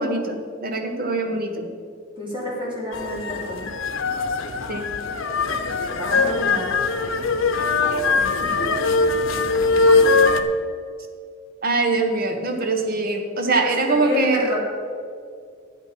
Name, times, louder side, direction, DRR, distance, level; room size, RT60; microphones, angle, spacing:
voice 1, 0.0-1.7 4.7-4.9 7.5-7.7 11.6-14.4, right 3 dB, 50° right, 4 dB, 1.3 m, -23 dB
voice 2, 2.2-3.6 5.9-6.7 8.2-8.9 9.2-9.5 13.5-14.6, left 1 dB, 25° right, -4 dB, 3.4 m, -29 dB
sound 1, 2.9-10.4, left 3 dB, 90° left, 0.8 m, -21 dB
11.5 x 8.1 x 6.0 m, 2.3 s
head